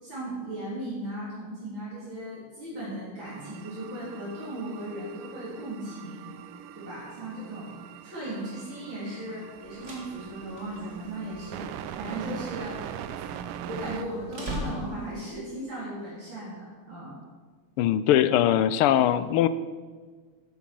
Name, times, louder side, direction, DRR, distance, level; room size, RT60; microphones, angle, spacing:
voice 1, 0.0-6.3 6.7-7.7 8.0-12.8 13.7-17.2, right 1 dB, 60° right, -9 dB, 4.4 m, -37 dB
sound 1, 3.2-14.0, right 10 dB, 90° right, 1.6 m, -41 dB
sound 2, 9.6-15.3, right 1 dB, 35° right, 2.3 m, -41 dB
voice 2, 17.8-19.5, left 11 dB, 85° left, 14 dB, 1.5 m, -21 dB
12.5 x 8.7 x 6.1 m, 1.5 s
omnidirectional pair, 2.4 m